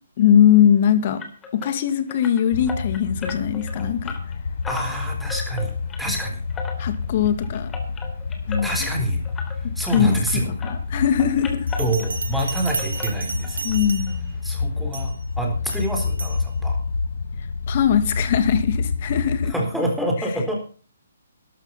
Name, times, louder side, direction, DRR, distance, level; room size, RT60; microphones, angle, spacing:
voice 1, 0.2-1.2 1.5-4.1 6.8-7.7 8.5-8.8 9.6-10.5 10.9-11.7 13.6-14.3 17.7-19.5, left 9 dB, 45° left, 11 dB, 2.1 m, -20 dB
sound 1, 1.2-10.4 10.6-12.4 12.7-13.8 14.0-14.2 14.6-14.7 15.0-15.1, left 4 dB, 15° left, 3.1 m, -38 dB
sound 2, 2.5-19.5, left 4 dB, 65° left, 1.0 m, -28 dB
voice 2, 4.7-5.7 6.0-6.4 8.6-9.2 9.8-10.5 11.8-13.7 14.4-16.8 19.4-20.6, right 1 dB, ahead, 1 dB, 3.9 m, -27 dB
Bell, 11.7-14.4 14.9-15.2 15.7-16.4, right 4 dB, 70° right, 2.2 m, -33 dB
13.0 x 12.0 x 5.6 m, 0.40 s
figure-of-eight pair, 135°, 0 cm